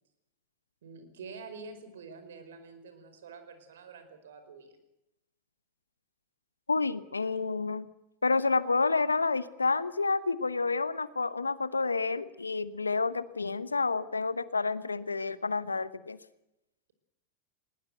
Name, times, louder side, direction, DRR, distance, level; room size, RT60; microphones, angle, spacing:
voice 1, 0.8-4.8, right 4 dB, 70° right, 9 dB, 5.1 m, -47 dB
voice 2, 6.7-7.9 8.2-16.2, left 4 dB, 90° left, 16 dB, 1.1 m, -29 dB
20.5 x 20.0 x 8.0 m, 0.88 s
hypercardioid pair, 90°, 0 cm